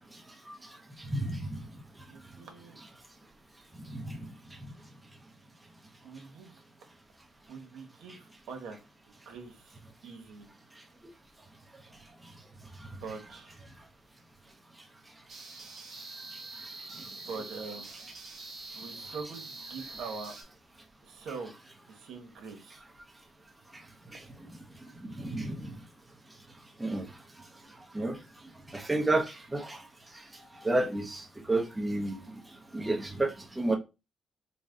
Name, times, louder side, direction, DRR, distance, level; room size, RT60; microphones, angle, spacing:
voice 1, 1.1-1.6 3.9-4.2 25.2-25.7 26.8-27.0 27.9-28.2 28.7-29.8 30.6-32.2 32.7-33.8, right 2 dB, 15° right, 0.8 m, -30 dB
voice 2, 2.1-2.8 6.0-6.6 7.5-8.8 9.0-10.5 12.9-13.5 17.0-17.9 18.7-20.3 21.0-21.5 21.9-22.8, right 4 dB, 80° right, 1.1 m, -43 dB
sound 1, 15.3-20.4, right 2 dB, 55° right, 1.1 m, -45 dB
4.0 x 2.2 x 3.7 m
cardioid pair, 90°, 0 cm